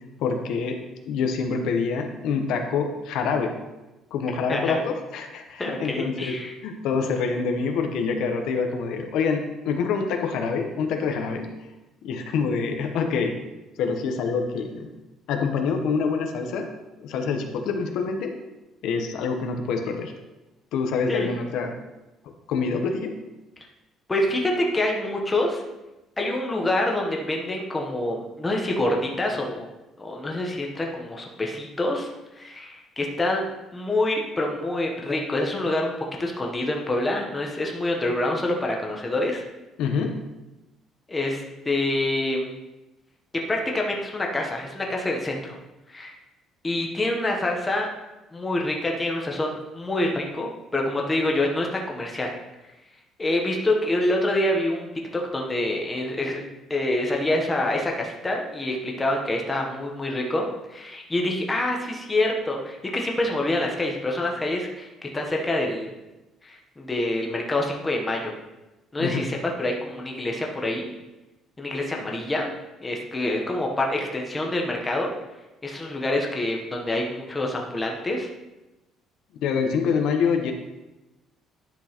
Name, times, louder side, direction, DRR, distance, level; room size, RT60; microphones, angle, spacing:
voice 1, 0.2-0.8 1.0-3.6 4.1-6.4 6.6-11.5 12.0-13.4 13.8-14.9 15.3-16.7 17.0-18.3 18.8-20.1 20.7-21.8 22.5-23.2 39.8-40.2 69.0-69.3 79.4-80.5, left 5 dB, 70° left, 4 dB, 0.8 m, -26 dB
voice 2, 4.5-4.9 5.6-6.5 21.1-21.3 24.1-25.6 26.2-29.7 30.0-32.1 32.3-33.4 33.7-35.9 36.2-39.4 41.1-42.5 43.5-45.6 45.9-46.2 46.6-47.9 48.3-52.3 53.2-54.9 55.1-56.4 56.7-65.9 66.4-68.3 68.9-70.9 71.6-72.5 72.8-75.1 75.6-78.3, left 1 dB, 15° left, 0 dB, 0.9 m, -26 dB
10.5 x 6.0 x 2.9 m, 1.0 s
cardioid pair, 170°, 0 cm